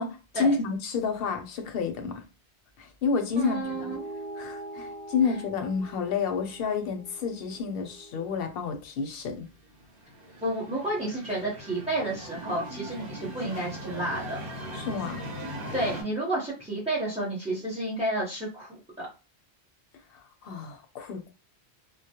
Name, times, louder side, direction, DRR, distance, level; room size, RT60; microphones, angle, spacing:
voice 1, 0.0-2.2 2.8-4.0 4.4-9.5 14.7-15.2 20.1-21.3, left 5 dB, 70° left, 0.7 m, -30 dB
voice 2, 3.4-4.0 10.4-14.4 15.5-19.1, right 1 dB, 10° right, 0.5 m, -31 dB
sound 1, 3.6-8.4, right 1 dB, 90° right, 0.9 m, -43 dB
sound 2, 9.7-16.0, equal, 60° right, 0.9 m, -40 dB
2.2 x 2.0 x 2.7 m
omnidirectional pair, 1.1 m